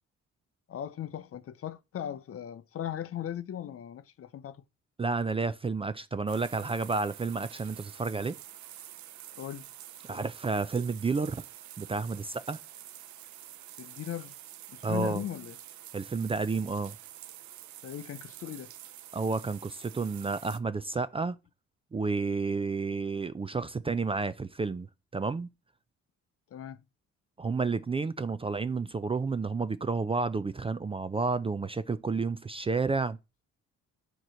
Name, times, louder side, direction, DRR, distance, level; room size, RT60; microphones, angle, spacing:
voice 1, 0.7-4.6 9.4-9.7 13.8-14.4 14.7-15.6 17.8-18.7 26.5-26.8, left 10 dB, 50° left, 0.6 m, -38 dB
voice 2, 5.0-8.4 10.1-11.4 11.8-12.6 14.8-15.2 15.9-17.0 19.1-21.3 21.9-24.9 25.1-25.5 27.4-33.2, right 4 dB, 20° right, 0.4 m, -31 dB
sound 1, 6.3-20.6, right 12 dB, 70° right, 0.6 m, -48 dB
9.0 x 3.1 x 6.2 m
cardioid pair, 90°, 30 cm